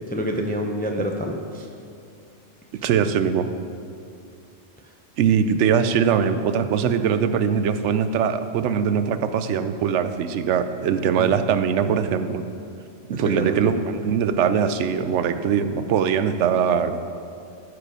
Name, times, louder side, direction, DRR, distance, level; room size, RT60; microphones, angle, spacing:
voice 1, 0.1-1.7 11.0-11.3 13.1-13.7, equal, 10° left, 2 dB, 0.4 m, -27 dB
voice 2, 2.8-3.5 5.2-12.4 13.1-17.0, right 7 dB, 80° right, 10 dB, 0.9 m, -21 dB
15.0 x 5.0 x 4.8 m, 2.5 s
omnidirectional pair, 1.2 m